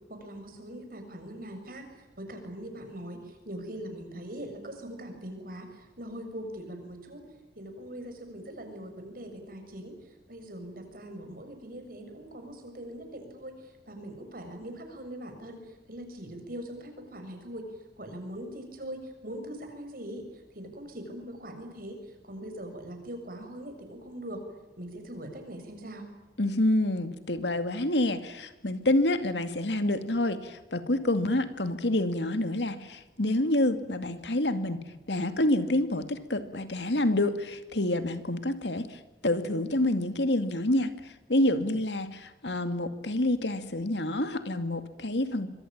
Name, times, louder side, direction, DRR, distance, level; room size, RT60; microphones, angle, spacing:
voice 1, 0.1-7.2 7.5-9.9 10.3-17.7 18.0-24.4 24.8-26.1, right 1 dB, 55° right, 6 dB, 6.8 m, -41 dB
voice 2, 26.4-40.9 41.3-45.5, left 1 dB, 80° left, 10 dB, 2.3 m, -28 dB
25.5 x 23.5 x 8.8 m, 1.1 s
head